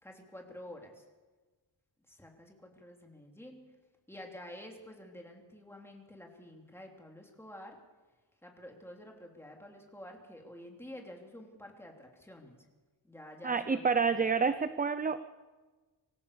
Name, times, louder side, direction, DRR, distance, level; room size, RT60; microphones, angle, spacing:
voice 1, 0.0-1.0 2.1-3.6 4.1-7.8 8.4-12.6 13.0-14.3, left 1 dB, 5° left, 1 dB, 3.2 m, -49 dB
voice 2, 13.4-15.2, right 5 dB, 20° right, 12 dB, 0.6 m, -28 dB
25.5 x 15.5 x 7.0 m, 1.3 s
wide cardioid pair, 160°, 44 cm